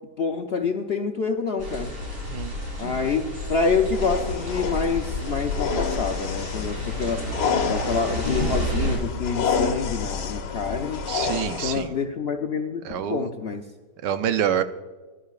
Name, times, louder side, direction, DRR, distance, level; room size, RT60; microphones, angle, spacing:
voice 1, 0.2-1.9 2.8-7.3 7.7-11.0 11.6-13.6, left 5 dB, 60° left, 4 dB, 0.7 m, -27 dB
sound 1, 1.6-9.0, equal, 55° right, 4.2 m, -31 dB
sound 2, 3.9-11.9, left 6 dB, 75° left, 1.6 m, -29 dB
voice 2, 11.1-11.9 12.8-13.3 14.0-14.6, right 9 dB, 85° right, 10 dB, 1.4 m, -26 dB
19.0 x 11.5 x 2.4 m, 1.4 s
omnidirectional pair, 1.8 m